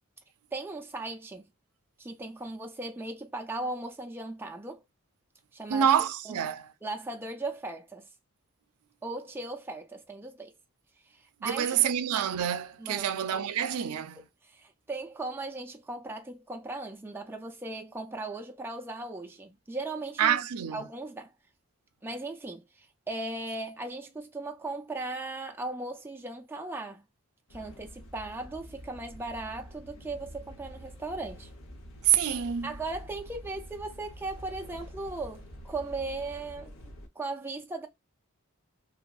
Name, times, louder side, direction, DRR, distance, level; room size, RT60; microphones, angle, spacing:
voice 1, 0.5-1.5 2.0-4.8 5.5-5.9 6.3-6.4 6.8-8.1 9.0-10.5 11.1-11.8 12.8-13.5 13.9-14.0 14.4-20.4 20.7-21.3 22.0-27.0 27.5-31.5 32.6-37.9, right 2 dB, 10° right, 0.3 m, -38 dB
voice 2, 5.7-6.7 11.4-14.2 20.2-20.8 32.0-32.7, right 9 dB, 85° right, 0.4 m, -27 dB
sound 1, 27.5-37.1, equal, 65° left, 0.7 m, -47 dB
2.7 x 2.4 x 2.3 m
head